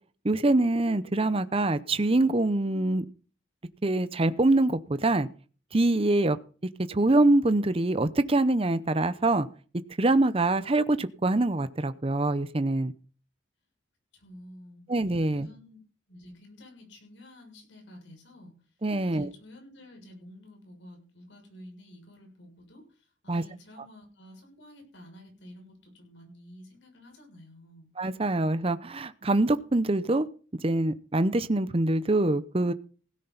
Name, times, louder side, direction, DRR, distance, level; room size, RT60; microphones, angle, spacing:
voice 1, 0.2-3.0 3.8-5.3 5.7-6.4 6.9-9.5 10.0-12.9 14.9-15.5 18.8-19.3 23.3-23.4 28.0-30.3 30.6-32.7, right 2 dB, 30° right, 13 dB, 0.7 m, -24 dB
voice 2, 14.1-14.8 15.3-15.8 16.1-18.6 19.0-27.9, left 1 dB, 70° left, 3 dB, 6.7 m, -50 dB
17.0 x 10.0 x 4.0 m, 0.38 s
head